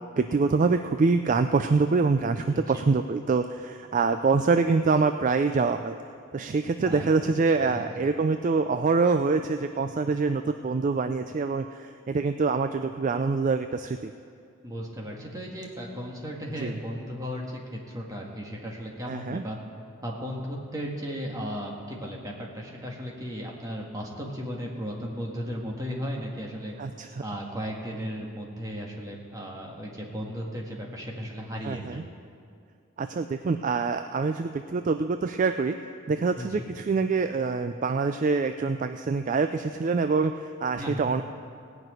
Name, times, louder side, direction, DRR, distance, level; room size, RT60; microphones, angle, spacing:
voice 1, 0.2-6.0 6.3-14.1 16.6-16.8 19.1-19.4 26.8-27.2 31.6-32.0 33.0-35.8 36.1-41.2, right 4 dB, 40° right, 8 dB, 0.3 m, -25 dB
voice 2, 2.5-2.8 6.9-7.1 7.7-8.1 14.6-17.5 17.7-19.6 20.0-26.7 27.2-32.0 36.4-36.6 40.8-41.0, equal, 15° right, -2 dB, 1.7 m, -35 dB
17.5 x 6.0 x 9.0 m, 2.3 s
head